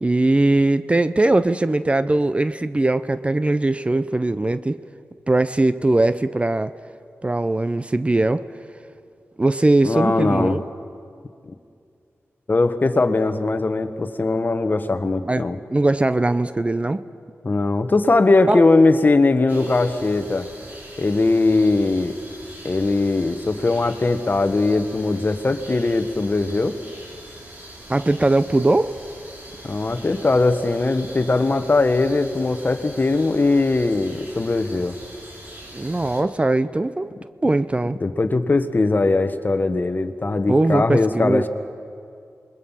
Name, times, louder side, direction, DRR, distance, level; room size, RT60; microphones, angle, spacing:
voice 1, 0.0-4.8 5.3-6.7 7.2-8.5 9.4-10.6 15.2-17.0 18.5-18.6 27.9-29.0 35.7-37.1 37.4-38.0 40.5-41.5, right 2 dB, 25° right, 14 dB, 0.5 m, -20 dB
voice 2, 9.8-10.6 12.5-15.6 17.4-20.5 21.0-22.2 22.6-26.8 29.6-35.0 38.0-41.5, left 3 dB, 40° left, 9 dB, 1.2 m, -20 dB
sound 1, 19.5-36.2, right 1 dB, 40° right, 4.3 m, -42 dB
27.5 x 21.0 x 5.7 m, 2.4 s
cardioid pair, 70°, 5 cm